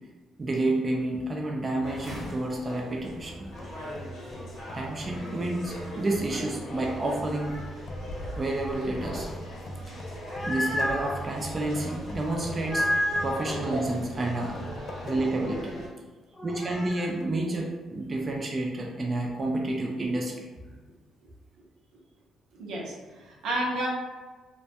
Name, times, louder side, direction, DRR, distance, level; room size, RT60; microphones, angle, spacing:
voice 1, 0.4-3.5 4.7-7.6 8.4-9.3 9.9-10.0 10.4-12.9 13.2-14.6 15.0-15.8 16.4-20.5, right 2 dB, 30° right, 0 dB, 0.4 m, -30 dB
sound 1, 1.8-15.9, left 1 dB, 70° left, 0.9 m, -40 dB
sound 2, 3.6-15.5 16.0-16.1 16.8-17.4, right 1 dB, 55° left, 0.3 m, -43 dB
sound 3, 10.0-11.2 12.6-13.5 16.4-17.1, left 1 dB, 10° left, 0.7 m, -30 dB
voice 2, 22.6-23.9, right 1 dB, 90° right, -3 dB, 0.5 m, -31 dB
2.2 x 2.1 x 2.7 m, 1.3 s
cardioid pair, 90°, 0 cm